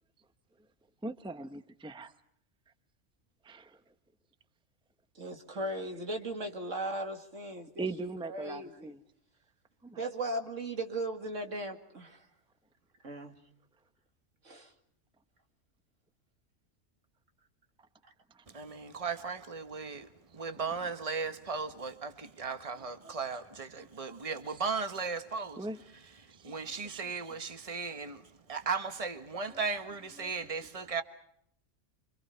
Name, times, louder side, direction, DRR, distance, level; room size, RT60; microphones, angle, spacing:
voice 1, 1.0-2.1 3.5-3.6 5.5-5.6 7.8-9.0 9.8-10.0 18.3-18.4 22.7-23.1 23.8-24.6 25.6-25.8 26.3-26.6 26.8-27.5 29.5-29.6 30.2-30.7, right 3 dB, 5° right, 0.8 m, -42 dB
voice 2, 5.2-7.9 8.2-8.9 10.0-12.2 13.0-13.3 14.4-14.7, right 1 dB, 80° right, 2.7 m, -37 dB
voice 3, 18.5-20.1 20.3-25.6 26.4-28.2 28.5-31.0, right 5 dB, 30° right, 1.4 m, -36 dB
28.0 x 25.5 x 5.7 m
omnidirectional pair, 1.3 m